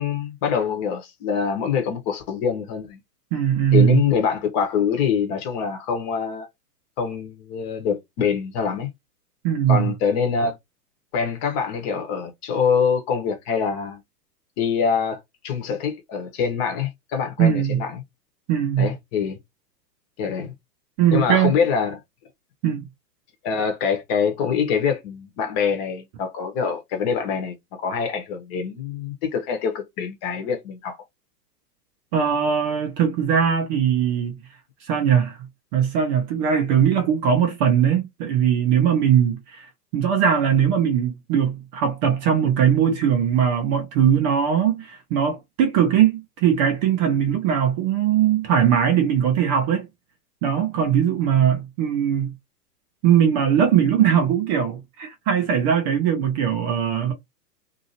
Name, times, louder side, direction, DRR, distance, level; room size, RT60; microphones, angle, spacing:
voice 1, 0.0-3.0 3.7-6.5 7.0-8.9 9.7-10.6 11.1-14.0 14.6-18.0 18.8-19.4 20.2-20.5 21.1-22.0 23.4-31.0, left 6 dB, 40° left, 1.1 m, -24 dB
voice 2, 3.3-4.0 9.4-9.9 17.4-17.8 18.5-18.9 21.0-21.5 22.6-22.9 32.1-34.3 34.8-35.4 35.7-39.6 39.9-49.9 50.4-52.3 53.0-57.1, right 8 dB, 30° right, 0.6 m, -20 dB
2.8 x 2.7 x 2.8 m
hypercardioid pair, 120°, 48 cm